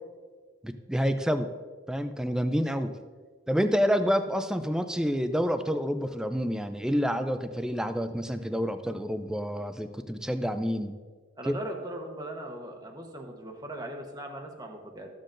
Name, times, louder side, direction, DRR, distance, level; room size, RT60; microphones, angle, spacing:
voice 1, 0.6-1.5 1.9-2.9 3.5-10.9 11.4-11.5, equal, 5° right, 9 dB, 0.4 m, -28 dB
voice 2, 11.4-15.1, right 1 dB, 20° right, 3 dB, 1.0 m, -39 dB
13.5 x 7.5 x 2.6 m, 1.5 s
head